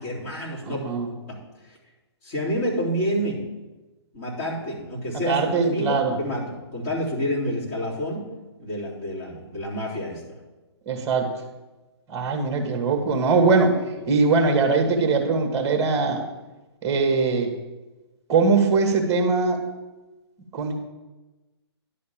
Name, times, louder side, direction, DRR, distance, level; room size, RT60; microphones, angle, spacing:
voice 1, 0.0-0.9 1.3-1.4 1.6-1.8 2.2-3.4 4.1-5.4 5.7-8.2 8.6-10.2, equal, 40° left, -7 dB, 3.7 m, -28 dB
voice 2, 0.7-1.1 5.2-6.1 10.9-11.3 12.1-13.7 14.1-16.2 16.8-17.5 18.3-19.6 20.5-20.7, right 4 dB, 20° right, 3 dB, 1.5 m, -21 dB
11.0 x 4.3 x 7.1 m, 1.1 s
hypercardioid pair, 140°, 14 cm